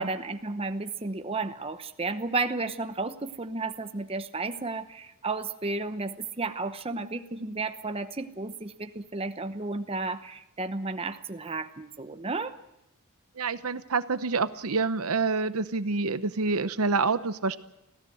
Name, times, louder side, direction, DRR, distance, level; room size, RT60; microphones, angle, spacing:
voice 1, 0.0-12.6, right 3 dB, 25° right, 9 dB, 0.9 m, -33 dB
voice 2, 13.4-17.6, right 4 dB, 80° right, 13 dB, 0.9 m, -27 dB
25.0 x 16.0 x 7.8 m, 0.90 s
head